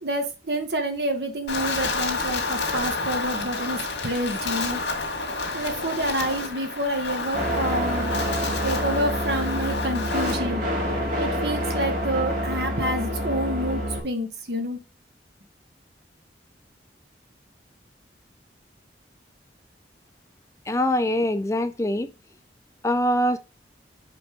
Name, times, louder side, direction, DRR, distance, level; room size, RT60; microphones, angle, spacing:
voice 1, 0.0-3.8 4.0-4.8 5.5-8.1 8.6-10.6 11.2-14.8, right 1 dB, 65° right, 1.5 m, -28 dB
Wind, 1.5-10.4, left 3 dB, 85° left, 2.1 m, -29 dB
sound 1, 7.3-14.0, equal, 50° right, 3.3 m, -27 dB
voice 2, 20.7-22.1 22.8-23.4, left 1 dB, 15° left, 0.4 m, -23 dB
5.5 x 5.3 x 5.2 m
head